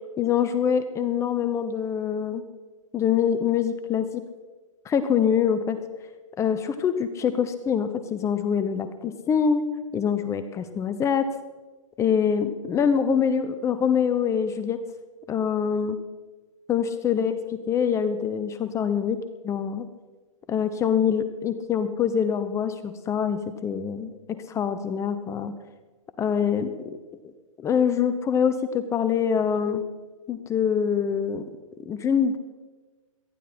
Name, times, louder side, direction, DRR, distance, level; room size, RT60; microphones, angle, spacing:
voice 1, 0.2-2.4 2.9-4.2 4.8-5.8 6.4-11.3 12.0-14.8 15.3-16.0 16.7-19.2 19.4-19.9 20.5-25.5 26.2-26.7 27.2-27.3 27.6-29.8 30.3-31.4 31.9-32.4, left 7 dB, 15° left, 11 dB, 0.7 m, -24 dB
18.5 x 13.5 x 4.3 m, 1.3 s
hypercardioid pair, 130°, 18 cm